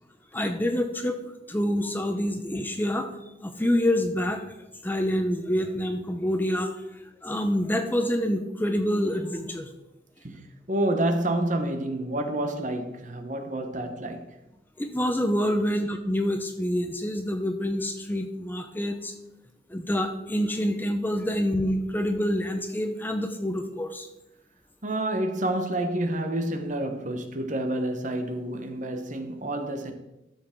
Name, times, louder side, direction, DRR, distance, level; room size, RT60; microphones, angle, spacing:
voice 1, 0.3-1.2 1.5-3.1 3.4-4.4 4.8-6.8 7.2-9.7 14.8-19.1 19.7-24.1, equal, 10° left, 0.6 m, -27 dB
voice 2, 10.7-14.3 24.8-29.9, right 1 dB, 40° right, 1.0 m, -28 dB
12.5 x 6.9 x 3.7 m
head